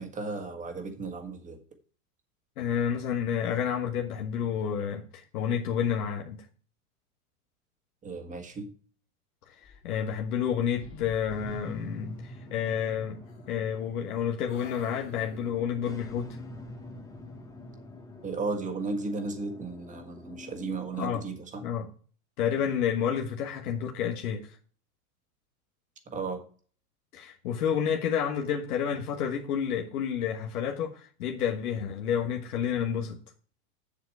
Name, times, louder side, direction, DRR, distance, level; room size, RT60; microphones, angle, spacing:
voice 1, 0.0-1.6 8.0-8.7 18.2-21.6 26.1-26.4, right 3 dB, 15° right, 1.5 m, -35 dB
voice 2, 2.6-6.4 9.5-13.2 13.5-16.4 21.0-21.3 21.6-21.9 22.4-24.6 27.1-33.2, left 8 dB, 85° left, 1.3 m, -30 dB
sound 1, 9.6-10.5 10.7-11.9 13.3-14.1 14.5-15.7, left 4 dB, 30° left, 2.3 m, -50 dB
sound 2, 11.3-21.3, left 2 dB, 10° left, 0.8 m, -46 dB
7.4 x 7.2 x 4.6 m
supercardioid pair, 140°, 43 cm